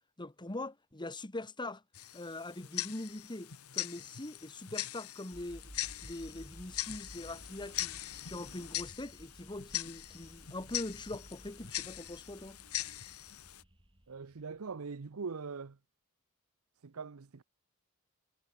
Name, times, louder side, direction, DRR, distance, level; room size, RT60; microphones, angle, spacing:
voice 1, 0.2-1.8 2.1-5.6 6.0-8.0 8.3-12.6, left 2 dB, 20° left, 1.5 m, -42 dB
Tick-tock, 1.9-13.6, left 13 dB, 90° left, 1.6 m, -41 dB
sound 1, 5.3-14.6, equal, 25° right, 4.4 m, -55 dB
voice 2, 14.1-15.8 16.8-17.4, right 5 dB, 80° right, 0.7 m, -42 dB
head